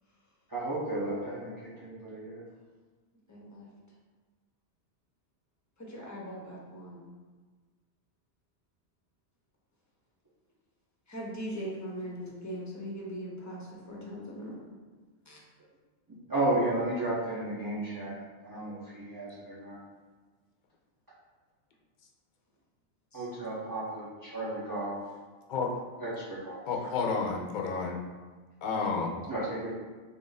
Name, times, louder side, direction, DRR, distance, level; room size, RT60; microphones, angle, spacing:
voice 1, 0.5-1.5 1.8-2.4 16.3-18.1 18.5-19.3 19.6-19.8 23.1-24.0 24.3-25.0 26.0-26.6 29.3-29.7, right 2 dB, 25° right, -9 dB, 0.6 m, -32 dB
voice 2, 3.3-3.7 5.8-7.1 11.1-14.6 15.3-15.4 23.1-23.3, equal, 20° left, -3 dB, 0.6 m, -40 dB
voice 3, 25.5-25.8 26.7-28.0 28.6-29.2, left 4 dB, 55° left, 0 dB, 0.6 m, -31 dB
3.5 x 2.5 x 4.0 m, 1.3 s
omnidirectional pair, 1.1 m